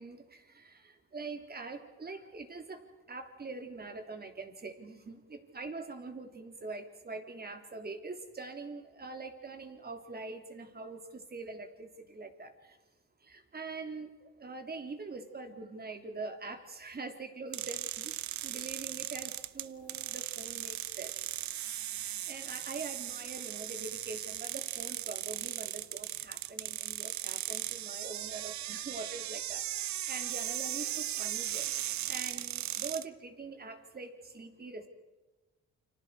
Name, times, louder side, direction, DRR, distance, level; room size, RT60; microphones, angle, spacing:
voice 1, 0.0-2.8 3.1-12.8 13.2-18.1 18.4-21.1 22.0-29.6 30.1-31.7 32.1-34.9, right 3 dB, 30° right, 6 dB, 3.3 m, -44 dB
sound 1, 17.5-33.1, right 13 dB, 65° right, 0.8 m, -38 dB
29.5 x 25.0 x 4.8 m, 1.1 s
cardioid pair, 90°, 30 cm